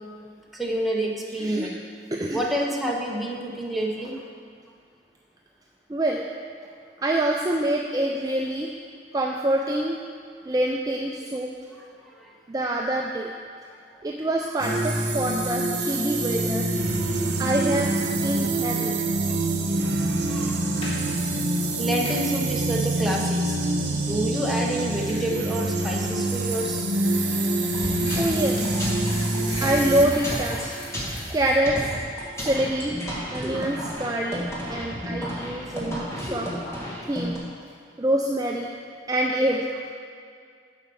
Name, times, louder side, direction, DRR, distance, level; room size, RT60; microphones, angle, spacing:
voice 1, 0.5-1.8 2.3-4.2 11.8-12.3 20.1-20.6 21.8-23.6 23.9-26.9 27.7-27.8, right 1 dB, ahead, -3 dB, 0.9 m, -29 dB
voice 2, 1.4-1.7 2.1-2.4 5.9-6.3 7.0-8.7 9.1-10.0 10.5-11.5 12.5-13.3 14.0-16.7 17.4-19.0 28.1-28.6 29.6-30.6 31.3-31.8 32.4-32.9 33.3-36.5 37.1-37.4 38.0-38.7 39.1-39.8, right 1 dB, 20° right, 0 dB, 0.4 m, -25 dB
sound 1, 14.6-30.1, right 2 dB, 65° right, 0.9 m, -25 dB
sound 2, 20.6-21.0 22.0-22.2 24.4-31.5, left 1 dB, 30° left, 1.9 m, -39 dB
sound 3, 27.7-37.4, equal, 15° left, 1.6 m, -33 dB
7.1 x 5.7 x 6.8 m, 2.2 s
head